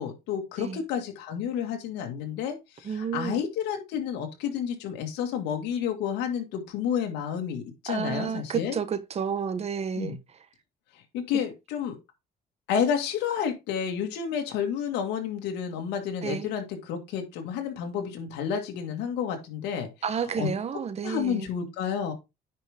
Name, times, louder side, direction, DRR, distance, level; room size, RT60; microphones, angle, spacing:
voice 1, 0.0-8.8 10.0-10.2 10.9-12.0 12.7-19.9 20.4-20.5 21.0-22.1, left 8 dB, 90° left, 2.1 m, -30 dB
voice 2, 2.8-3.4 7.9-10.2 16.2-16.5 20.0-21.5, right 6 dB, 40° right, 1.1 m, -30 dB
9.7 x 5.2 x 3.6 m
cardioid pair, 110°, 17 cm